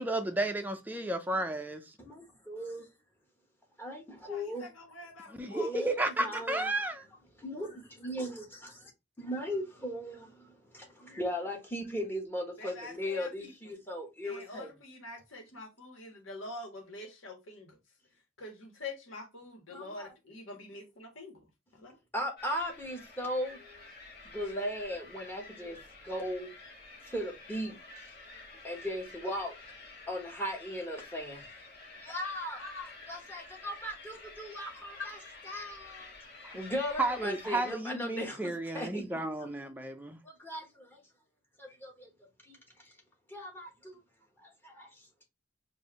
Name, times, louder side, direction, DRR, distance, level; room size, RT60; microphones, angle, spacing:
voice 1, 0.0-1.8 5.4-7.0 36.4-36.5 37.0-40.2, right 2 dB, 10° right, 0.5 m, -32 dB
voice 2, 2.0-2.8 3.8-4.7 5.5-5.9 6.2-6.7 7.4-8.8 9.2-10.3 10.7-14.7 19.7-20.1 22.1-23.8 24.3-25.8 26.0-26.5 27.1-27.8 28.6-29.5 30.1-31.4 32.0-32.6 33.1-35.2 35.4-36.1 36.5-39.0 39.4-39.5 40.4-40.6 41.6-42.1 42.5-42.6 43.3-44.0 44.6-44.9, equal, 10° left, 1.1 m, -37 dB
voice 3, 4.3-5.7 6.3-6.6 12.6-13.5 14.2-17.8 18.4-21.4 21.7-22.0 32.6-32.9, left 3 dB, 85° left, 1.5 m, -45 dB
sound 1, 22.4-37.7, left 3 dB, 50° left, 1.6 m, -50 dB
4.7 x 2.6 x 3.0 m
head